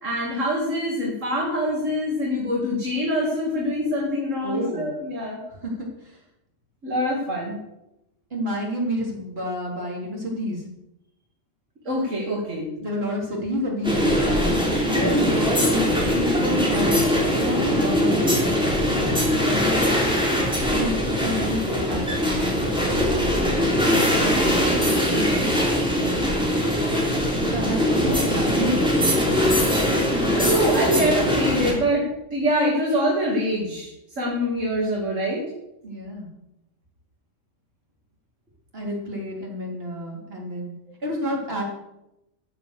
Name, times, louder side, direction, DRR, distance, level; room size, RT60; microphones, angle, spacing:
voice 1, 0.0-5.4 6.8-7.6 11.8-12.7 15.0-15.2 24.2-24.7 30.1-33.9 34.2-35.5, equal, 80° right, -2 dB, 2.8 m, -25 dB
voice 2, 4.4-4.9 5.6-6.2 8.3-10.6 12.8-14.6 14.9-19.9 20.6-23.6 25.1-25.5 27.5-28.9 35.8-36.3 38.7-40.7 41.0-41.6, equal, 50° right, -2 dB, 3.7 m, -29 dB
sound 1, 13.8-31.7, equal, 5° right, 3.3 m, -21 dB
13.5 x 7.8 x 6.7 m, 0.89 s
omnidirectional pair, 1.3 m